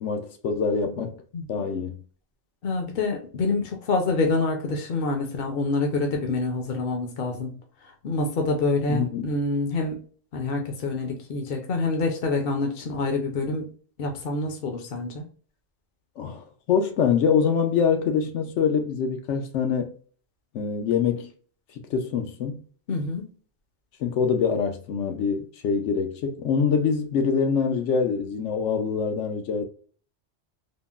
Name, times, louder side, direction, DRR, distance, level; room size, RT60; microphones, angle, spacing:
voice 1, 0.0-1.2 1.5-2.0 8.9-9.2 16.2-19.9 20.5-21.3 21.9-22.6 24.0-29.6, left 6 dB, 85° left, 0.9 m, -24 dB
voice 2, 2.6-7.5 7.8-10.0 10.3-13.6 14.0-15.2 22.9-23.3, left 3 dB, 60° left, 0.8 m, -26 dB
3.6 x 2.0 x 2.3 m
omnidirectional pair, 1.2 m